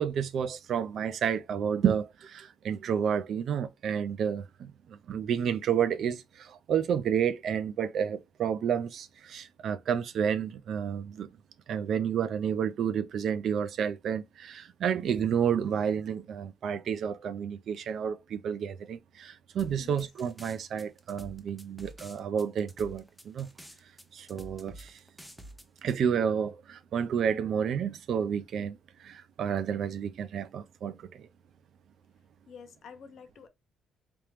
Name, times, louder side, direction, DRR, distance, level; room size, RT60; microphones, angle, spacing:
voice 1, 0.0-11.3 11.7-23.5 24.1-25.0 25.8-31.3, right 8 dB, 65° right, 0.4 m, -30 dB
sound 1, 19.6-25.9, right 1 dB, ahead, 0.7 m, -48 dB
voice 2, 19.8-20.1 32.5-33.5, left 6 dB, 65° left, 0.7 m, -48 dB
3.4 x 2.9 x 3.0 m
cardioid pair, 90°, 0 cm